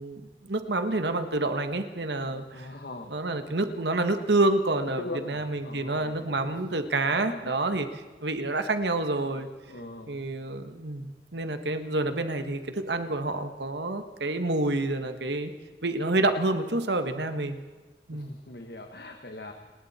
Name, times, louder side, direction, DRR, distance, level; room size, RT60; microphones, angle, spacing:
voice 1, 0.0-2.7 3.1-5.0 5.3-7.9 8.2-9.5 10.1-15.5 15.8-17.6 18.1-18.3, right 2 dB, 75° right, 8 dB, 1.6 m, -28 dB
voice 2, 2.5-3.1 5.0-6.3 7.5-7.8 9.7-10.2 18.1-19.5, left 2 dB, 60° left, 4 dB, 1.5 m, -40 dB
30.0 x 20.0 x 4.4 m, 1.3 s
head